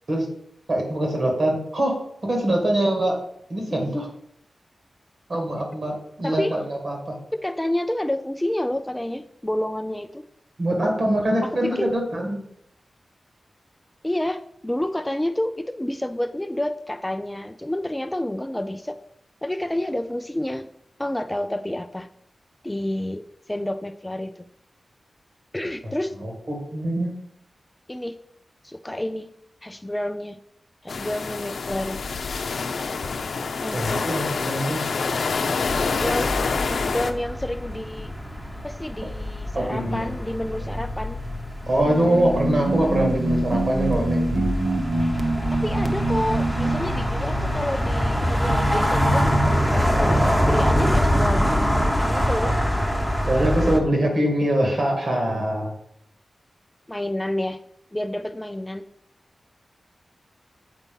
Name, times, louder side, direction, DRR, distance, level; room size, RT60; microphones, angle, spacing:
voice 1, 0.7-3.2 3.5-4.1 5.3-7.2 10.6-12.4 26.2-27.1 33.7-34.8 39.5-40.1 41.7-44.5 53.3-55.7, right 1 dB, 55° right, 1 dB, 2.2 m, -23 dB
voice 2, 6.2-6.6 7.3-10.3 11.4-11.9 14.0-19.0 19.4-20.7 21.0-22.1 22.6-24.3 25.5-26.1 27.9-28.2 28.6-29.3 29.6-30.4 30.8-32.0 33.6-34.1 35.8-36.3 36.7-38.1 38.6-41.2 45.5-50.1 50.5-52.6 56.9-57.6 57.9-58.9, left 1 dB, 10° left, 9 dB, 0.3 m, -29 dB
sound 1, 30.9-37.1, left 4 dB, 85° left, 0.6 m, -27 dB
sound 2, 35.7-53.8, equal, 5° right, 1.0 m, -24 dB
sound 3, 41.7-46.9, right 2 dB, 35° right, 0.7 m, -25 dB
8.2 x 4.2 x 5.4 m, 0.74 s
wide cardioid pair, 105°, 0 cm